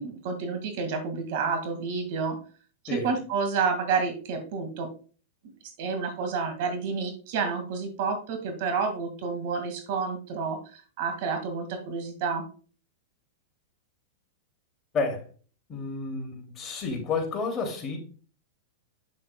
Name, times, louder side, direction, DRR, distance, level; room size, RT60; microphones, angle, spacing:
voice 1, 0.0-2.4 3.0-4.9 5.8-12.5, right 5 dB, 60° right, 6 dB, 1.9 m, -29 dB
voice 2, 15.7-18.0, left 4 dB, 25° left, 2 dB, 2.6 m, -30 dB
8.4 x 7.0 x 2.2 m, 0.39 s
hypercardioid pair, 130°, 0 cm